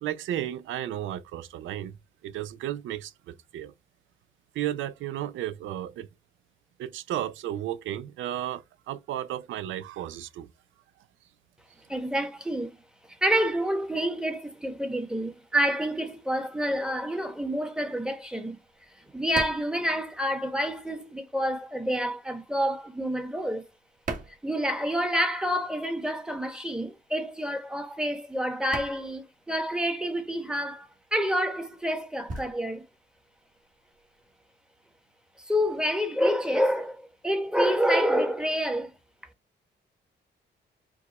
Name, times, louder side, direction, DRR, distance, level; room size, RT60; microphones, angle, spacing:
voice 1, 0.0-2.0 2.2-3.7 4.5-6.1 6.8-10.5, right 12 dB, 85° right, 0.5 m, -33 dB
voice 2, 11.9-12.8 13.2-18.6 19.1-23.7 24.3-32.9 35.4-38.9, equal, 5° right, 1.0 m, -28 dB
sound 1, 18.7-20.9 21.1-25.3 25.5-34.3, right 3 dB, 40° right, 1.4 m, -42 dB
4.8 x 2.3 x 4.0 m
cardioid pair, 85°, 20 cm